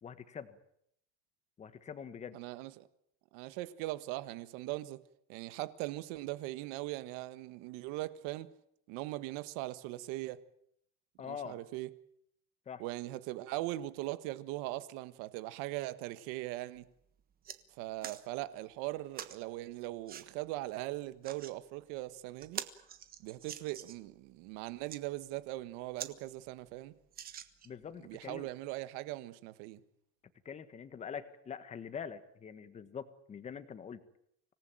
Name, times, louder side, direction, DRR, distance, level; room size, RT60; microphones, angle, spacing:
voice 1, 0.0-0.6 1.6-2.4 11.2-11.6 12.7-12.8 27.6-28.5 30.4-34.0, left 7 dB, 20° left, 1.4 m, -44 dB
voice 2, 2.3-2.9 3.3-5.0 5.3-8.5 8.9-10.4 11.2-11.9 12.8-16.9 17.8-22.6 23.2-26.9 28.0-29.8, right 17 dB, 65° right, 1.5 m, -40 dB
sound 1, 16.8-16.9 17.2-17.6 18.0-18.2 19.1-19.4 20.1-20.3 21.0-21.5 22.0-22.1 22.4-24.1 24.7-25.0 25.6-25.7 26.0-26.1 26.5-26.6 27.1-27.8 28.5-28.6, right 9 dB, 25° right, 1.3 m, -45 dB
25.5 x 18.5 x 9.0 m
cardioid pair, 170°, 34 cm